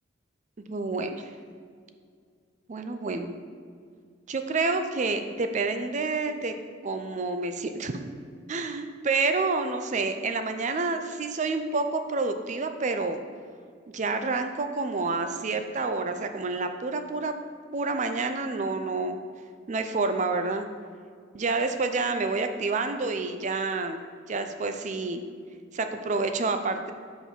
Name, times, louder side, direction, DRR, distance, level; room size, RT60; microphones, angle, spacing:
voice 1, 0.7-1.3 2.7-3.3 4.3-6.5 6.8-8.0 8.5-13.2 13.9-17.3 17.7-19.2 19.7-20.7 21.3-24.0 24.3-25.2 25.7-26.9, right 3 dB, 40° right, 7 dB, 0.4 m, -28 dB
5.5 x 4.6 x 5.9 m, 2.1 s
head